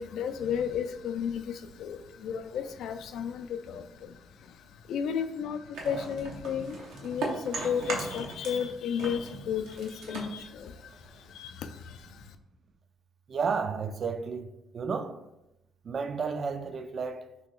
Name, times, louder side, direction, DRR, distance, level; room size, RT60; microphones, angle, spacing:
voice 1, 0.0-12.4, left 7 dB, 80° left, 0.3 m, -34 dB
sound 1, 5.7-8.7 9.0-11.3, right 3 dB, 85° right, 0.7 m, -37 dB
voice 2, 13.3-15.2 15.8-17.3, right 5 dB, 50° right, 0.3 m, -32 dB
2.9 x 2.9 x 3.7 m
cardioid pair, 90°, 0 cm